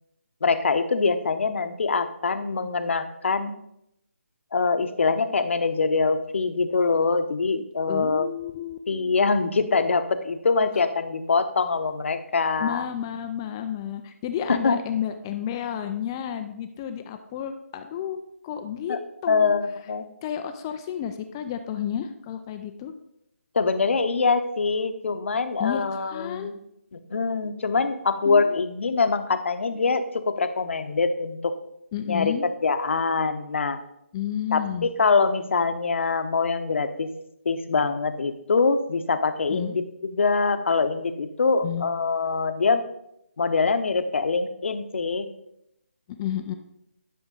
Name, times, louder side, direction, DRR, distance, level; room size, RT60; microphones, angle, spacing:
voice 1, 0.4-3.6 4.5-8.3 8.9-12.9 14.5-14.8 18.9-19.0 19.3-20.1 23.5-26.6 26.9-31.6 32.1-33.8 34.5-37.1 37.4-42.8 43.4-45.3, left 4 dB, 55° left, 9 dB, 0.8 m, -24 dB
voice 2, 7.9-8.8 12.6-18.2 18.4-19.0 19.2-19.5 20.2-22.9 25.6-26.5 28.2-28.6 31.9-32.4 34.1-34.9 39.5-39.8 41.6-41.9 46.1-46.5, left 9 dB, 15° left, 8 dB, 0.4 m, -31 dB
11.0 x 6.1 x 3.8 m, 0.80 s
figure-of-eight pair, 155°, 8 cm